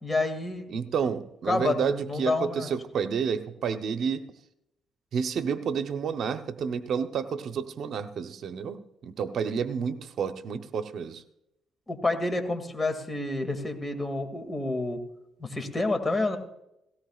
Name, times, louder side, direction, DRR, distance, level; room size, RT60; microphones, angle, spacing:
voice 1, 0.0-0.7 1.5-2.7 11.9-15.0 15.4-16.4, left 2 dB, 20° left, 6 dB, 2.2 m, -29 dB
voice 2, 0.7-4.2 5.1-11.2, right 6 dB, 65° right, 9 dB, 0.8 m, -30 dB
18.0 x 17.0 x 2.4 m, 0.84 s
cardioid pair, 90°, 0 cm